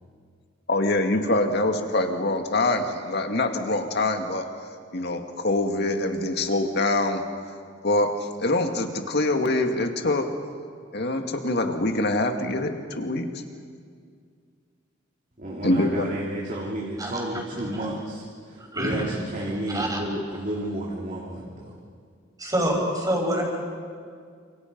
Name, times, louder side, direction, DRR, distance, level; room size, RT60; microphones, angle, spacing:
voice 1, 0.7-4.5 4.9-7.2 7.8-8.1 8.4-10.3 10.9-13.3 15.6-16.1, left 2 dB, 60° left, 5 dB, 2.1 m, -24 dB
voice 2, 15.4-21.8, right 1 dB, 45° right, -3 dB, 3.0 m, -32 dB
voice 3, 18.6-19.0 19.7-20.0 22.4-23.4, right 1 dB, 20° right, 0 dB, 5.8 m, -26 dB
29.5 x 27.5 x 5.4 m, 2.1 s
head